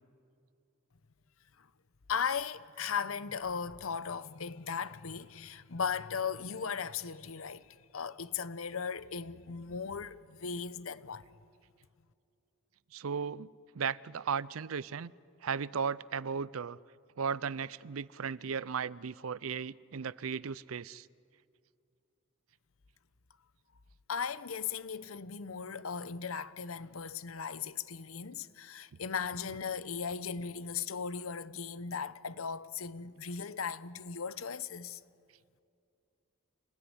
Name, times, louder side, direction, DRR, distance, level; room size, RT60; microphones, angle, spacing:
voice 1, 2.1-11.3 24.1-35.0, left 6 dB, 90° left, 0.8 m, -37 dB
voice 2, 12.9-13.5 13.7-15.1 15.4-16.8 17.2-21.1, right 6 dB, 90° right, 0.5 m, -36 dB
28.5 x 17.0 x 9.8 m
head